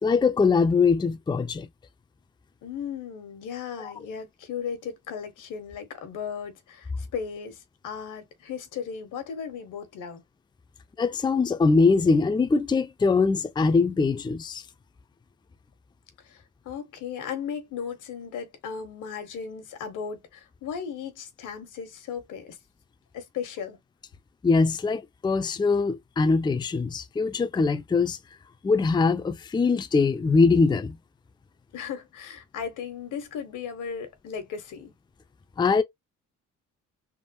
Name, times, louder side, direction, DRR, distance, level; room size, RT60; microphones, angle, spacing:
voice 1, 0.0-1.7 3.8-3.9 11.0-14.6 24.4-28.2 28.6-31.0 35.6-35.8, left 4 dB, 15° left, 0.4 m, -22 dB
voice 2, 2.6-10.2 16.2-22.6 23.1-23.8 31.7-34.9, left 7 dB, 85° left, 1.2 m, -36 dB
3.5 x 2.1 x 2.6 m
cardioid pair, 90°, 30 cm